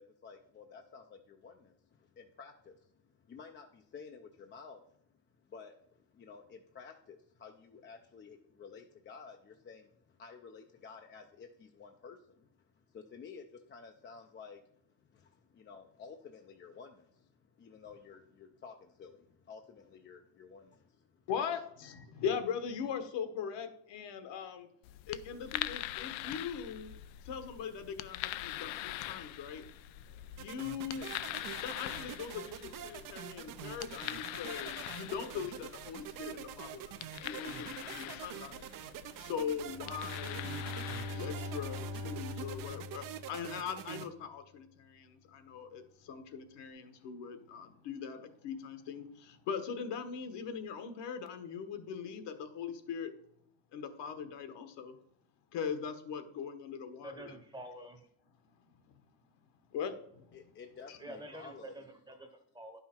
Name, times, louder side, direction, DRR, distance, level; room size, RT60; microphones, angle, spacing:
voice 1, 0.0-21.3 60.3-61.8, left 5 dB, 25° left, 4 dB, 0.4 m, -53 dB
voice 2, 21.3-24.7 25.1-26.9 27.2-29.6 30.3-31.2 31.6-53.1 53.7-55.0 55.5-57.3 58.8-58.9 59.7-60.4 60.9-61.0, left 7 dB, 65° left, 8 dB, 1.2 m, -41 dB
sound 1, 24.8-42.7, left 15 dB, 90° left, 0.6 m, -44 dB
sound 2, 30.4-44.1, right 11 dB, 45° right, 0.5 m, -46 dB
Bowed string instrument, 39.6-43.9, left 3 dB, 65° right, 1.3 m, -42 dB
voice 3, 57.0-58.1 61.0-62.8, right 1 dB, 10° right, 6 dB, 0.9 m, -48 dB
10.5 x 5.6 x 4.4 m, 0.74 s
cardioid pair, 155°, 46 cm